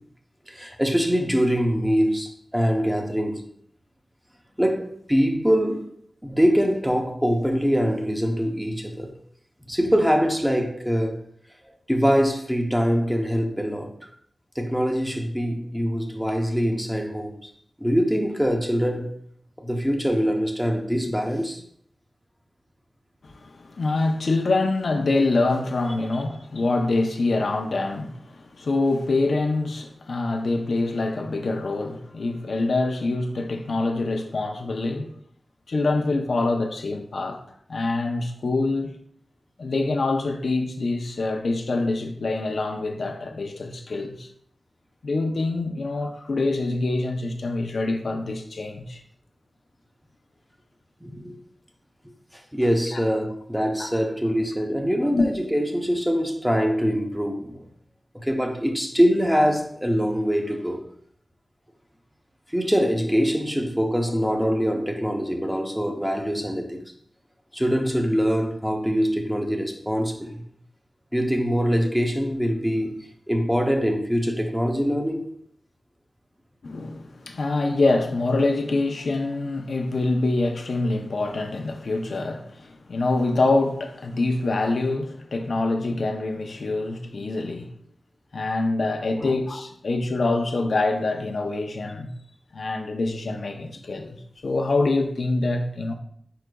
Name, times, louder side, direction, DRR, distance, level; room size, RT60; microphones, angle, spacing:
voice 1, 0.5-3.4 4.6-5.9 6.2-9.1 9.7-11.2 11.9-13.9 14.6-17.5 17.8-19.1 19.6-21.6 51.0-51.4 52.5-57.7 58.1-60.8 62.5-66.8 67.5-70.4 71.1-75.3 89.2-89.3, equal, 5° right, 0.6 m, -23 dB
voice 2, 23.2-35.2 35.7-37.4 37.7-39.0 39.6-44.3 45.0-49.0 52.9-53.0 53.8-53.9 55.1-55.3 76.6-87.7 88.3-92.1 92.5-95.9, left 2 dB, 75° left, 0.5 m, -25 dB
5.0 x 4.7 x 2.2 m
wide cardioid pair, 100°, 0 cm